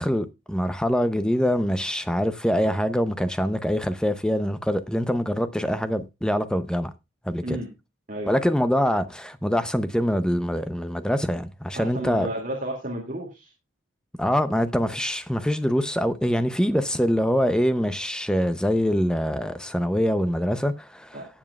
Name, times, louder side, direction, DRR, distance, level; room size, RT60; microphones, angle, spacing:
voice 1, 0.0-6.9 7.2-7.6 8.3-12.3 14.1-21.2, equal, 5° left, 0.6 m, -24 dB
voice 2, 8.1-8.5 11.7-13.5 21.1-21.3, right 1 dB, 40° right, 2.4 m, -32 dB
18.0 x 7.3 x 2.3 m
head